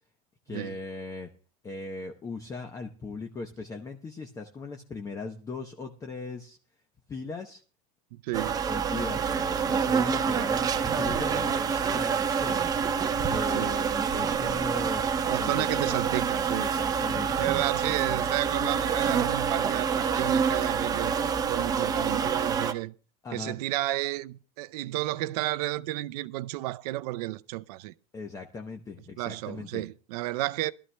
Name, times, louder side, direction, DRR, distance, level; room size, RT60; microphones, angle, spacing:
voice 1, 0.5-1.3 1.6-6.6 7.1-7.6 8.7-12.7 13.3-15.0 15.4-15.8 16.5-17.5 17.9-18.3 23.2-23.5 28.1-29.8, left 3 dB, 15° left, 0.8 m, -39 dB
voice 2, 8.1-8.6 13.5-13.8 15.3-16.7 17.3-21.2 21.5-22.9 23.3-27.9 29.2-30.7, right 17 dB, 70° right, 0.6 m, -32 dB
sound 1, 8.3-22.7, right 6 dB, 15° right, 0.6 m, -27 dB
21.5 x 12.5 x 2.2 m
supercardioid pair, 150°, 21 cm